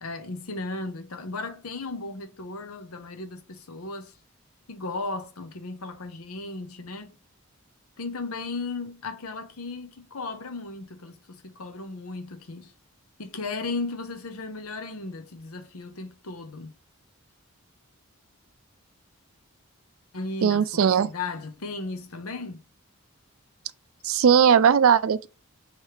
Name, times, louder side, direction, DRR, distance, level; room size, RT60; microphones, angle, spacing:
voice 1, 0.0-4.1 4.7-7.2 8.0-12.7 13.2-16.7 20.1-22.6, left 3 dB, 80° left, 0.8 m, -35 dB
voice 2, 20.4-21.1 24.0-25.3, right 7 dB, 70° right, 0.4 m, -19 dB
3.3 x 3.2 x 4.7 m
head